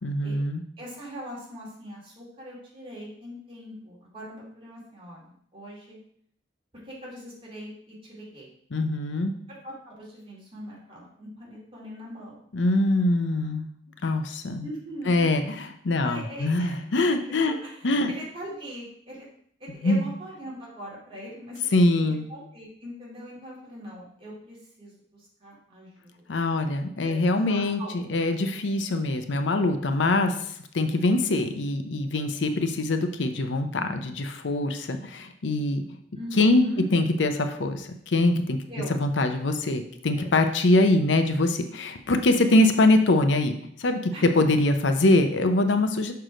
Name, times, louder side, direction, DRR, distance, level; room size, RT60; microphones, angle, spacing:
voice 1, 0.0-0.6 8.7-9.3 12.5-13.6 14.0-14.7 15.1-17.6 17.8-18.1 19.8-20.1 21.7-22.2 26.3-30.4 30.7-35.8 36.4-36.6 36.9-38.6 39.0-43.5 43.8-46.1, left 2 dB, 70° left, 7 dB, 0.6 m, -23 dB
voice 2, 0.8-6.0 6.8-8.5 9.5-12.4 14.6-15.2 16.0-16.8 17.5-19.3 19.6-21.7 22.0-25.9 27.0-27.1 27.5-28.2 36.1-36.9 38.7-38.9 40.1-40.3 42.4-42.6 44.1-44.3, equal, 30° right, -5 dB, 2.5 m, -41 dB
6.3 x 4.7 x 5.0 m, 0.66 s
head